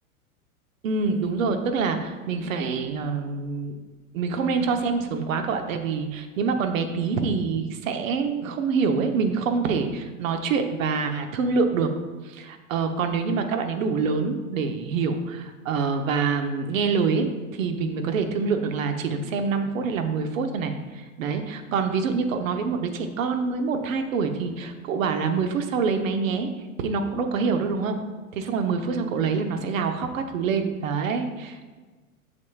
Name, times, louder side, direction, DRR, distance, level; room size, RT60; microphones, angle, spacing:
voice 1, 0.8-3.7 4.1-11.9 12.2-17.3 17.5-26.5 26.8-28.0 28.3-31.7, right 5 dB, 65° right, 6 dB, 1.0 m, -26 dB
8.6 x 6.4 x 2.4 m, 1.3 s
hypercardioid pair, 115°, 42 cm